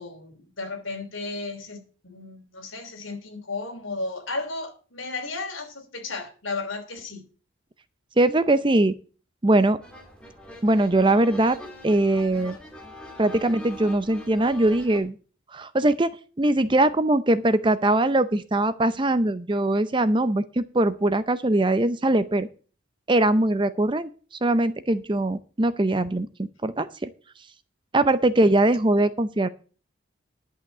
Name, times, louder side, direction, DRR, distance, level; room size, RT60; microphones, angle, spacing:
voice 1, 0.0-7.3 28.4-28.5, left 3 dB, 75° left, 3.1 m, -34 dB
voice 2, 8.2-8.9 9.4-9.8 10.6-11.6 11.8-12.6 13.2-15.2 15.5-16.1 16.4-22.5 23.1-24.1 24.4-27.1 27.9-29.5, right 2 dB, 25° right, 0.5 m, -21 dB
sound 1, 9.8-15.0, left 1 dB, 5° left, 2.5 m, -43 dB
11.0 x 5.8 x 8.0 m
head